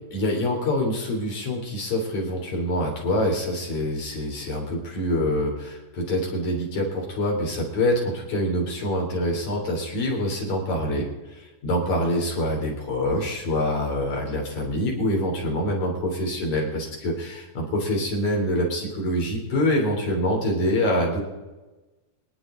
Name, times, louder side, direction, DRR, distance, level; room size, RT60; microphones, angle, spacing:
voice 1, 0.1-11.1 11.4-21.2, left 1 dB, 55° left, 0 dB, 4.6 m, -25 dB
26.0 x 10.5 x 3.8 m, 1.1 s
omnidirectional pair, 4.0 m